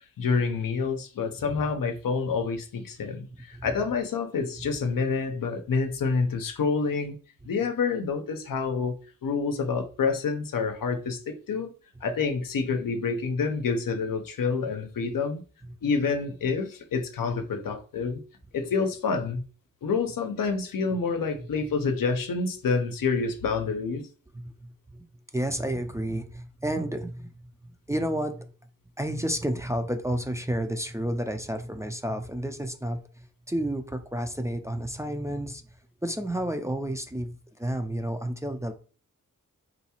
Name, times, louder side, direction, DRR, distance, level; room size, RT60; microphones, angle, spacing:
voice 1, 0.2-7.2 7.4-9.0 9.2-11.7 12.0-15.4 15.8-18.2 18.5-19.4 19.8-24.1, left 5 dB, 85° left, 0.6 m, -28 dB
voice 2, 24.3-25.0 25.3-27.3 27.9-28.5 29.0-35.6 36.0-38.7, right 1 dB, 10° right, 0.3 m, -31 dB
3.9 x 2.3 x 2.8 m
wide cardioid pair, 65°, 33 cm